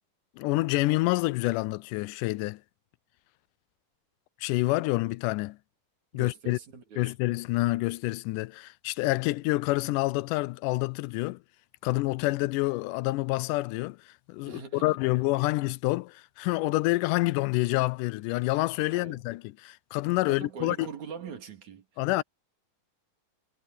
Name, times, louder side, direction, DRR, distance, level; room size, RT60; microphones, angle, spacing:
voice 1, 0.4-2.6 4.4-5.6 6.1-6.6 7.0-11.4 11.8-14.0 14.3-20.9 22.0-22.2, left 20 dB, 90° left, 2.1 m, -27 dB
voice 2, 6.1-7.1 14.4-15.0 18.9-19.2 20.3-22.0, right 6 dB, 65° right, 3.9 m, -42 dB
omnidirectional pair, 3.6 m